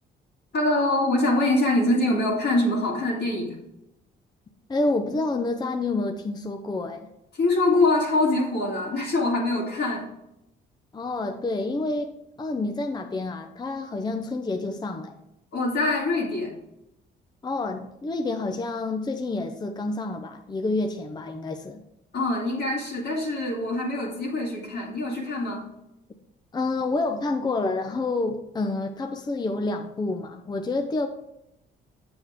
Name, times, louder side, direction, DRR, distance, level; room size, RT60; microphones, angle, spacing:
voice 1, 0.5-3.6 7.3-10.1 15.5-16.5 22.1-25.7, left 2 dB, 60° left, -3 dB, 2.0 m, -24 dB
voice 2, 4.7-7.1 10.9-12.1 12.4-15.2 17.4-21.8 26.5-31.1, left 2 dB, 20° left, 5 dB, 0.6 m, -28 dB
7.0 x 6.9 x 3.6 m, 0.84 s
cardioid pair, 90°, 20 cm